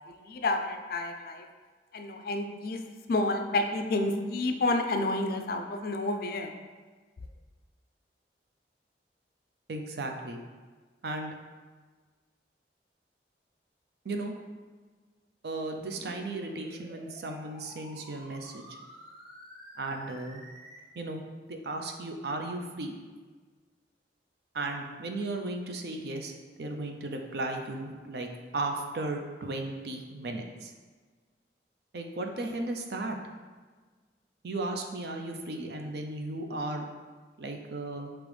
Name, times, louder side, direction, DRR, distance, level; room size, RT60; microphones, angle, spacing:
voice 1, 0.1-1.5 1.9-2.8 3.1-6.5, left 2 dB, 55° left, 5 dB, 0.4 m, -30 dB
voice 2, 9.7-10.4 11.0-11.3 14.0-14.3 15.4-18.6 19.8-20.4 20.9-21.2 21.5-23.0 24.5-30.7 31.9-33.2 34.4-36.9 37.4-38.1, right 2 dB, 65° right, 3 dB, 0.5 m, -35 dB
sound 1, 15.8-20.8, equal, ahead, 0.9 m, -50 dB
5.3 x 3.0 x 3.3 m, 1.4 s
head